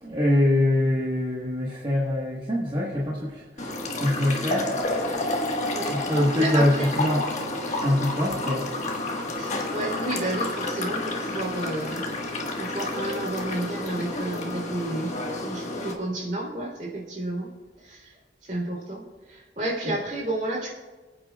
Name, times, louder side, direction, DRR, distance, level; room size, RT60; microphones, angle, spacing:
voice 1, 0.0-3.7 4.0-4.7 5.9-7.3 7.8-8.7 19.9-20.0, left 1 dB, 25° right, -4 dB, 1.3 m, -24 dB
pouring coffee, 3.6-15.9, left 2 dB, 40° left, 1.5 m, -30 dB
voice 2, 5.7-6.9 9.4-17.5 17.8-18.1 18.4-20.7, right 1 dB, 45° right, -3 dB, 3.2 m, -31 dB
24.5 x 9.0 x 2.3 m, 1.3 s
head